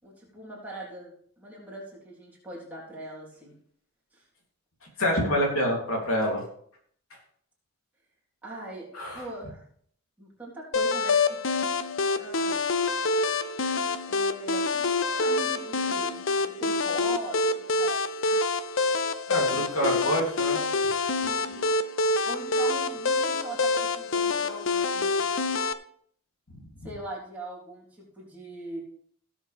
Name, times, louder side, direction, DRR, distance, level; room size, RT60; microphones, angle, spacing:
voice 1, 0.0-3.6 4.1-4.2 8.4-8.9 9.1-9.6 10.2-11.4 12.2-12.6 14.1-14.9 15.2-18.5 21.2-21.7 22.2-25.3 26.8-28.8, right 2 dB, 10° right, -6 dB, 3.7 m, -41 dB
voice 2, 5.0-6.4 8.9-9.2 19.3-20.6, equal, 80° left, -1 dB, 3.1 m, -26 dB
sound 1, 10.7-25.7, left 3 dB, 60° left, 0.6 m, -26 dB
17.0 x 7.3 x 3.5 m, 0.62 s
head